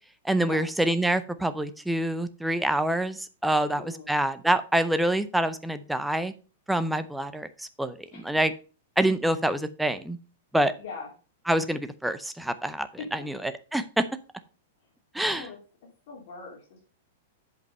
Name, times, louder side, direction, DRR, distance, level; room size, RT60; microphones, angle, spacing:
voice 1, 0.2-6.3 6.7-8.5 9.0-10.2 10.5-10.7 11.5-14.0 15.1-15.5, right 1 dB, ahead, 11 dB, 0.5 m, -26 dB
voice 2, 3.5-4.1 8.1-8.2 10.8-11.1 13.0-13.1 15.2-16.8, left 5 dB, 50° left, -2 dB, 3.0 m, -42 dB
8.0 x 5.4 x 5.4 m, 0.35 s
supercardioid pair, 170°, 0 cm